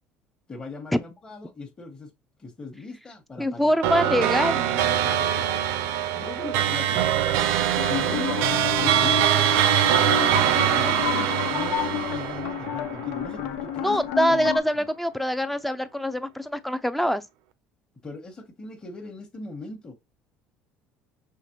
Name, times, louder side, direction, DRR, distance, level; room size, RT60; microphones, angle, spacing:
voice 1, 0.5-2.1 2.4-5.6 6.1-7.1 7.6-14.0 14.3-14.9 18.0-19.9, left 3 dB, 20° left, 1.1 m, -39 dB
voice 2, 3.4-4.6 13.8-17.2, equal, 5° left, 0.4 m, -24 dB
sound 1, 3.8-13.5, right 11 dB, 80° right, 0.5 m, -23 dB
sound 2, 7.8-14.6, left 11 dB, 85° left, 0.6 m, -30 dB
5.7 x 3.0 x 3.0 m
cardioid pair, 135°, 4 cm